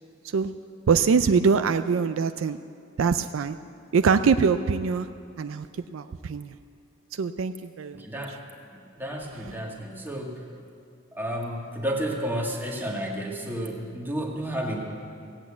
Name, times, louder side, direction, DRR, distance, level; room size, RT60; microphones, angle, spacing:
voice 1, 0.9-2.6 3.0-3.6 3.9-5.1 5.4-5.7 5.9-6.5 7.1-8.0, right 5 dB, 70° right, 11 dB, 0.4 m, -23 dB
voice 2, 7.9-8.4 8.7-10.4 11.1-14.8, right 1 dB, 10° right, -1 dB, 1.6 m, -31 dB
16.5 x 8.1 x 8.4 m, 2.4 s
head